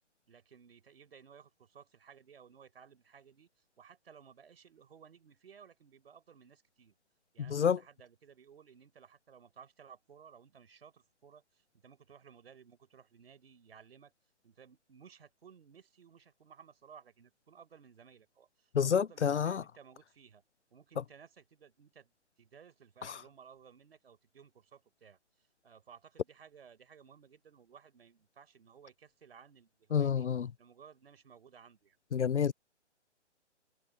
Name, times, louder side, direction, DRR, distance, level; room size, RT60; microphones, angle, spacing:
voice 1, 0.3-3.5 3.8-6.9 7.3-14.1 14.4-20.4 20.7-22.1 22.4-25.2 25.6-30.3 30.6-32.0, right 7 dB, 55° right, 5.0 m, -58 dB
voice 2, 7.5-7.8 18.7-19.6 29.9-30.5 32.1-32.5, left 7 dB, 75° left, 0.6 m, -28 dB
figure-of-eight pair, 140°, 35 cm